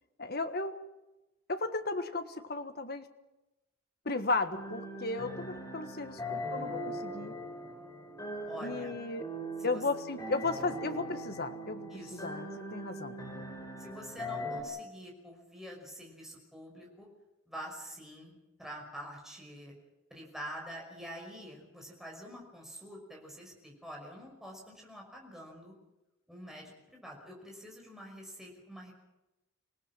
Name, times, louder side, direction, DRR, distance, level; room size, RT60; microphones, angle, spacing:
voice 1, 0.2-0.8 1.5-3.0 4.0-7.3 8.6-9.2 9.6-13.2, left 3 dB, 45° left, 8 dB, 1.5 m, -35 dB
sound 1, 4.5-14.6, equal, 15° left, 4.2 m, -40 dB
voice 2, 8.5-9.0 9.6-9.8 11.9-12.4 13.8-17.1 17.5-19.7 20.1-25.7 26.3-28.9, equal, ahead, -1 dB, 5.7 m, -46 dB
26.0 x 18.0 x 7.5 m, 0.98 s
head